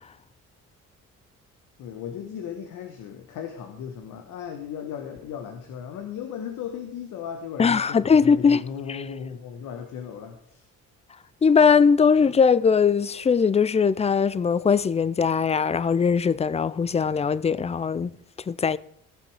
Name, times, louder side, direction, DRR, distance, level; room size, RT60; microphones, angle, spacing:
voice 1, 1.8-10.6, left 8 dB, 90° left, 1.3 m, -36 dB
voice 2, 7.6-8.6 11.4-18.1 18.5-18.8, left 6 dB, 20° left, 0.4 m, -20 dB
15.0 x 7.2 x 4.8 m
cardioid pair, 90°, 30 cm